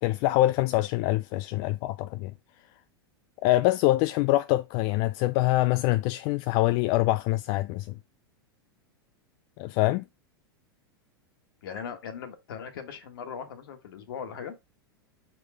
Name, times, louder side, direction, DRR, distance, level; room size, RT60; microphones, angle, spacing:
voice 1, 0.0-2.3 3.4-8.0 9.6-10.0, left 17 dB, 45° left, 0.4 m, -25 dB
voice 2, 11.6-14.6, left 7 dB, 65° left, 1.7 m, -39 dB
5.3 x 4.6 x 4.7 m
hypercardioid pair, 95°, 12 cm